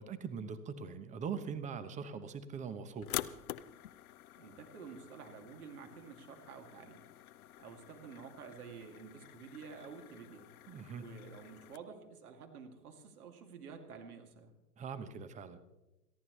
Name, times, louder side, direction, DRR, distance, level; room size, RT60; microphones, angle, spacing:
voice 1, 0.0-3.1 10.7-11.1 14.8-15.6, right 6 dB, 15° right, 12 dB, 0.9 m, -42 dB
sound 1, 3.0-11.8, left 13 dB, 65° left, 0.8 m, -47 dB
voice 2, 4.4-7.0 7.6-10.5 10.9-14.5, right 6 dB, 65° right, 4 dB, 2.7 m, -50 dB
28.5 x 11.0 x 3.2 m, 1.0 s
hypercardioid pair, 120°, 48 cm